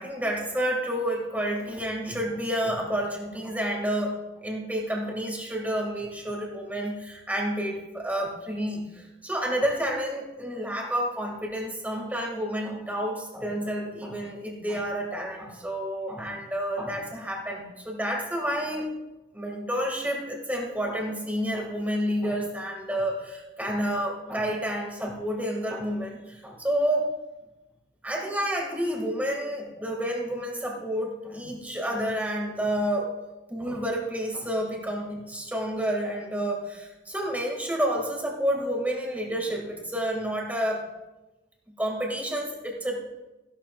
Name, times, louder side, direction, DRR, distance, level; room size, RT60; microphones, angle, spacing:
voice 1, 0.0-18.9 19.3-27.1 28.0-33.1 33.5-40.8 41.8-43.0, equal, 10° right, -1 dB, 2.3 m, -29 dB
15.5 x 12.0 x 2.5 m, 1.0 s
head